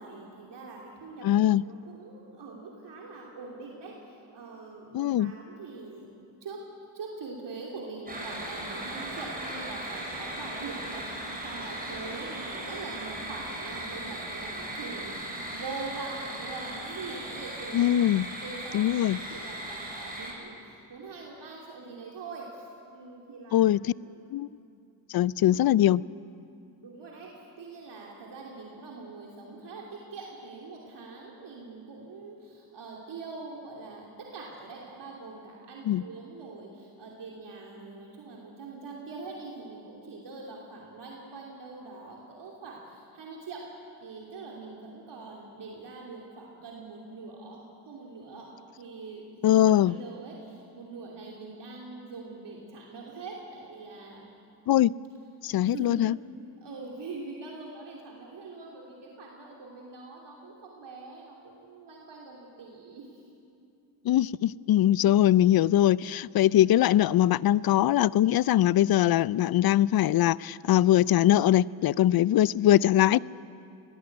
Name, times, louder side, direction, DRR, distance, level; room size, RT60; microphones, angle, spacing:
voice 1, 0.0-6.1 6.4-6.6 6.9-17.9 18.4-23.6 24.0-24.2 25.5-25.8 26.8-43.6 44.0-48.5 48.8-54.3 55.6-56.0 56.6-63.2, right 3 dB, 65° right, 3.1 m, -43 dB
voice 2, 1.2-1.6 4.9-5.3 17.7-18.3 18.7-19.2 23.5-23.8 24.3-24.5 25.1-26.0 35.9-36.0 49.4-50.0 54.7-54.9 55.4-56.2 64.0-73.2, left 12 dB, 55° left, 0.5 m, -22 dB
sound 1, 8.1-20.3, right 1 dB, 20° right, 7.2 m, -38 dB
20.0 x 17.5 x 8.7 m
cardioid pair, 65°, 45 cm